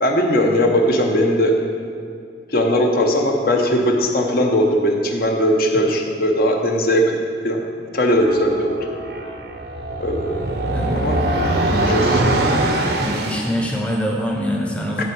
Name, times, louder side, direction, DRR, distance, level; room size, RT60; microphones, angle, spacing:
voice 1, 0.0-1.5 2.5-7.0 7.4-7.6 7.9-8.8 10.0-10.4 10.9-11.2 11.8-12.2 15.0-15.1, equal, 55° left, 2 dB, 0.7 m, -18 dB
sound 1, 8.1-13.5, right 1 dB, 60° right, 0.6 m, -22 dB
voice 2, 13.0-15.0, equal, 5° left, -1 dB, 0.7 m, -24 dB
10.5 x 3.9 x 4.6 m, 2.3 s
head